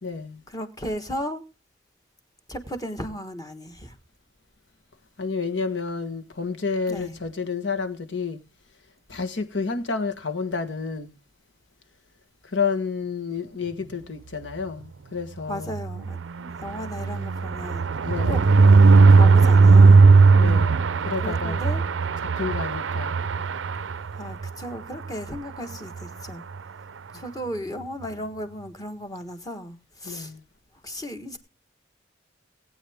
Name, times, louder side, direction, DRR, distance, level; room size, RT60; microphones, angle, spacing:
voice 1, 0.0-0.4 5.2-8.4 9.1-11.1 12.4-15.7 18.0-18.5 20.4-21.6 22.4-23.2 27.1-27.2 30.0-30.4, left 4 dB, 65° left, 1.5 m, -30 dB
voice 2, 0.5-1.4 2.5-3.9 6.9-7.1 15.5-17.9 18.3-18.4 19.1-20.0 21.2-21.8 24.2-26.4 27.1-30.3 30.8-31.4, equal, 20° left, 1.4 m, -35 dB
sound 1, 15.7-24.5 24.9-25.1 25.4-25.5 25.7-26.0, right 4 dB, 75° right, 0.5 m, -17 dB
19.0 x 8.7 x 3.5 m
head